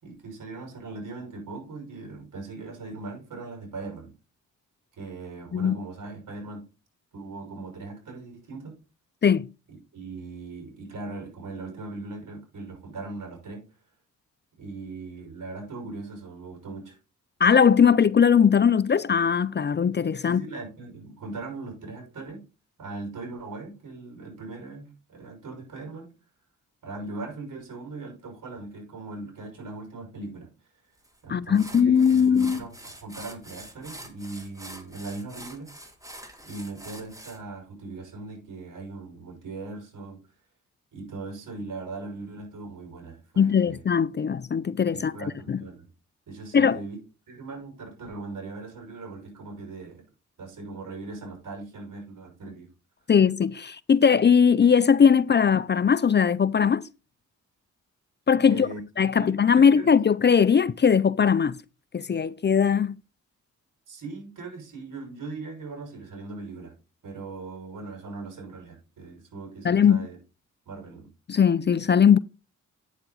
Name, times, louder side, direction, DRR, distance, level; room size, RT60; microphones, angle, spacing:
voice 1, 0.0-4.1 5.0-6.6 7.1-8.8 9.9-13.6 14.6-17.0 20.2-22.4 22.8-26.1 26.8-30.5 31.2-35.7 36.4-40.2 40.9-43.8 44.9-45.9 46.3-47.0 47.3-50.0 50.4-52.7 58.4-58.8 59.2-59.9 63.9-66.7 67.0-70.2 70.7-71.1, right 3 dB, 70° right, 6.0 m, -39 dB
voice 2, 17.4-20.4 31.3-32.6 43.4-45.1 45.5-45.6 46.5-46.8 53.1-56.8 58.3-58.7 59.0-61.6 61.9-63.0 69.6-70.1 71.3-72.2, left 7 dB, 35° left, 0.5 m, -20 dB
sound 1, 31.0-31.2 31.5-37.4, right 1 dB, 10° right, 2.4 m, -44 dB
9.0 x 7.3 x 4.0 m
cardioid pair, 70°, 32 cm